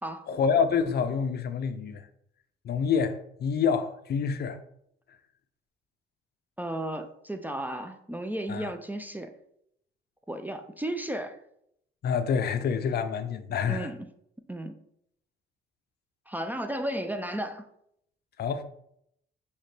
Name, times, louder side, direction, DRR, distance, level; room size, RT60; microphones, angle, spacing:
voice 1, 0.3-2.0 2.6-4.6 8.5-8.7 12.0-13.9 18.4-18.6, left 6 dB, 55° left, 0.5 m, -27 dB
voice 2, 6.6-9.3 10.3-11.4 13.7-14.1 14.5-14.8 16.3-17.6, right 1 dB, 10° right, 0.4 m, -34 dB
5.5 x 2.9 x 3.2 m
cardioid pair, 90°, 20 cm